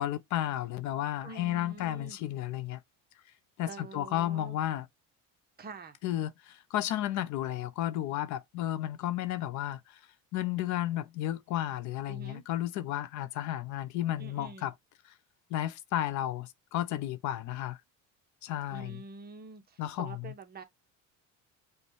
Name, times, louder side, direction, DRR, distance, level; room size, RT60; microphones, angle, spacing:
voice 1, 0.0-2.8 3.6-4.9 6.0-10.0 10.3-14.7 15.5-17.8 18.4-19.0 19.8-20.1, left 13 dB, 55° left, 0.5 m, -33 dB
voice 2, 1.2-2.2 3.7-4.6 5.6-6.0 12.1-12.4 14.2-14.7 18.7-20.6, right 4 dB, 25° right, 0.7 m, -46 dB
5.1 x 2.2 x 3.0 m
cardioid pair, 130°, 36 cm